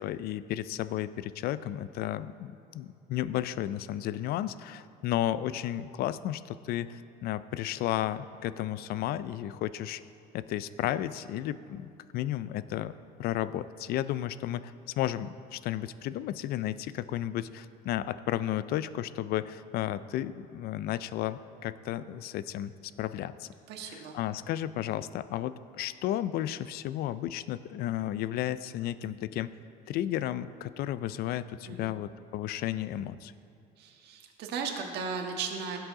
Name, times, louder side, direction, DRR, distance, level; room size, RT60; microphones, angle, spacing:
voice 1, 0.0-10.0 10.3-12.9 13.2-23.5 23.8-29.5 29.9-33.3, left 12 dB, 60° left, 15 dB, 0.4 m, -33 dB
voice 2, 23.7-24.2 31.7-31.9 33.8-35.8, right 5 dB, 70° right, 2 dB, 1.5 m, -36 dB
16.0 x 7.7 x 3.7 m, 2.6 s
cardioid pair, 125°, 18 cm